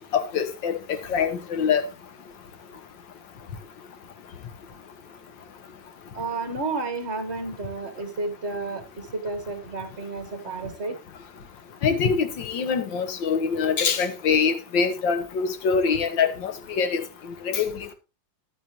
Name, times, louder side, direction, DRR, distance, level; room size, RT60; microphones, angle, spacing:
voice 1, 0.1-0.8 1.1-1.9 11.8-17.0 17.5-17.9, left 6 dB, 75° left, 1.8 m, -24 dB
voice 2, 6.1-11.0, right 3 dB, 35° right, 1.6 m, -31 dB
13.5 x 10.5 x 3.0 m
omnidirectional pair, 2.1 m